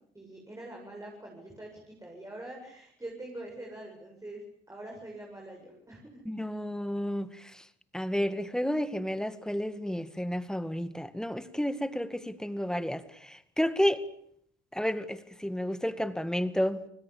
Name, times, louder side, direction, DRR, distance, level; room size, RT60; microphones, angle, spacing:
voice 1, 0.1-4.4 4.7-6.2, right 1 dB, 15° right, -1 dB, 8.0 m, -44 dB
voice 2, 6.3-7.3 7.9-14.0 14.7-16.8, equal, 5° left, 12 dB, 2.0 m, -31 dB
29.0 x 20.5 x 8.7 m, 0.71 s
cardioid pair, 90°, 20 cm